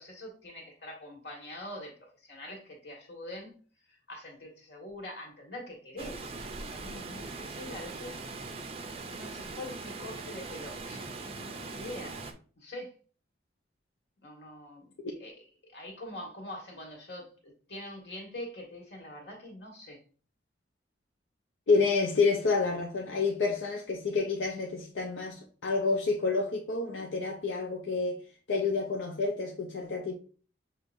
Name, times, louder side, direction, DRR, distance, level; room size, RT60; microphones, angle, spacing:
voice 1, 0.0-2.0 2.2-3.5 3.9-6.3 6.7-8.2 9.1-12.2 12.6-13.0 14.2-14.9 15.2-20.0, left 1 dB, 65° left, 1.6 m, -44 dB
Water, 6.0-12.3, right 3 dB, 30° right, 0.4 m, -41 dB
voice 2, 21.7-28.2 28.5-30.1, left 4 dB, 85° left, 0.6 m, -29 dB
6.2 x 2.9 x 2.5 m
head